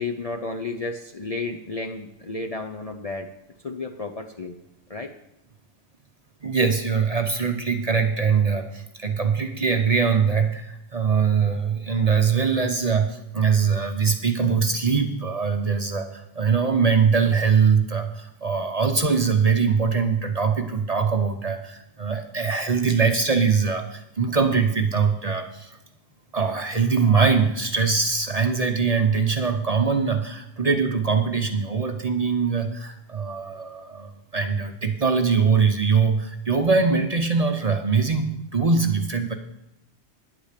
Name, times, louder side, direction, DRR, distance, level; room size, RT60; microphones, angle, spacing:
voice 1, 0.0-3.3 3.6-4.6 4.9-5.1, left 3 dB, 40° left, 3 dB, 0.6 m, -32 dB
voice 2, 6.4-25.8 26.3-39.3, right 5 dB, 35° right, 5 dB, 0.7 m, -22 dB
10.0 x 8.4 x 6.7 m, 0.83 s
omnidirectional pair, 1.3 m